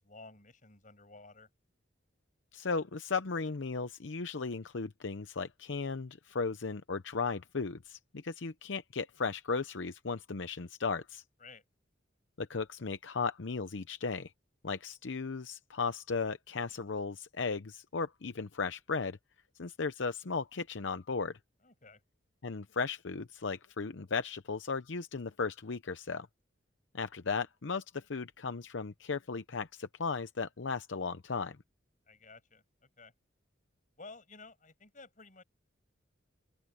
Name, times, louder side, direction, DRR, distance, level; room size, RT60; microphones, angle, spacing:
voice 1, 0.0-1.5 11.4-11.6 21.6-22.0 32.1-32.6 33.0-33.1 34.0-35.4, left 3 dB, 45° left, 6.9 m, -53 dB
voice 2, 2.5-11.2 12.4-14.3 14.6-19.2 19.6-21.4 22.4-26.3 26.9-31.6, left 4 dB, 75° left, 0.7 m, -36 dB
open air
head